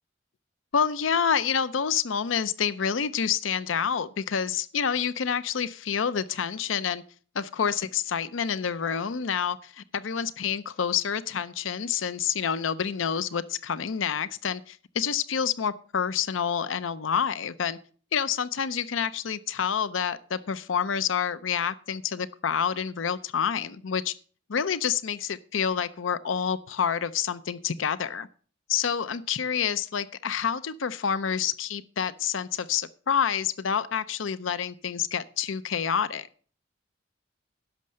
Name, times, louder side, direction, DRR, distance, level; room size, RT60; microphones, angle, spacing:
voice 1, 0.7-7.0 7.3-17.8 18.1-24.1 24.5-28.3 28.7-36.3, left 7 dB, 90° left, 0.6 m, -28 dB
11.0 x 6.4 x 7.6 m
head